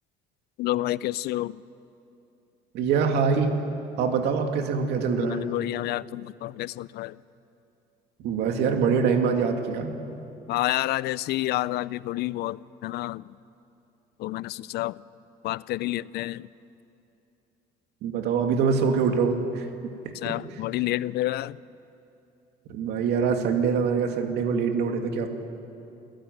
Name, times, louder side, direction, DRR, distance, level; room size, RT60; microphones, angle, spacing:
voice 1, 0.6-1.6 5.2-7.2 10.5-13.2 14.2-15.0 15.4-16.5 20.1-21.6, left 16 dB, 75° left, 20 dB, 0.5 m, -29 dB
voice 2, 2.7-3.6 4.0-5.4 8.2-10.0 18.0-19.7 20.0-20.3 22.7-25.3, right 5 dB, 80° right, 4 dB, 2.4 m, -24 dB
28.5 x 15.5 x 9.5 m, 2.8 s
cardioid pair, 110°, 17 cm